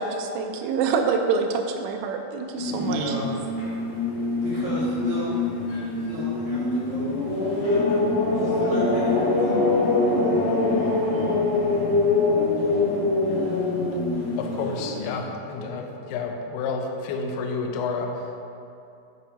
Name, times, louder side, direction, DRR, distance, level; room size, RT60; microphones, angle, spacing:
voice 1, 0.0-3.1, right 5 dB, 85° right, 3 dB, 2.8 m, -26 dB
sound 1, 2.5-15.2, left 2 dB, 60° left, 1.7 m, -24 dB
voice 2, 2.6-3.4 4.4-5.3 5.6-7.2 8.3-10.5 10.7-12.1 15.6-15.9, right 1 dB, 70° right, -9 dB, 2.2 m, -36 dB
voice 3, 14.4-18.5, left 4 dB, 90° left, 2 dB, 2.2 m, -30 dB
8.1 x 5.2 x 2.8 m, 2.6 s
omnidirectional pair, 5.2 m